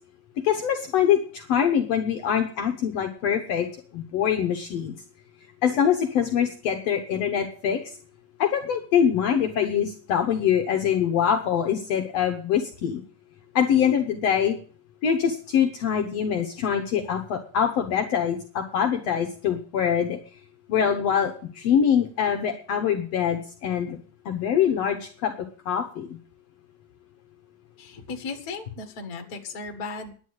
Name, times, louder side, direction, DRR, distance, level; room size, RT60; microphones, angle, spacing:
voice 1, 0.4-3.7 3.9-4.9 5.6-7.8 8.4-13.0 13.6-14.6 15.0-20.2 20.7-24.0 24.3-25.3 25.7-26.2, left 8 dB, 65° left, 4 dB, 1.9 m, -24 dB
voice 2, 27.8-30.1, left 4 dB, 35° left, 4 dB, 1.7 m, -36 dB
10.5 x 9.6 x 8.0 m, 0.42 s
omnidirectional pair, 3.6 m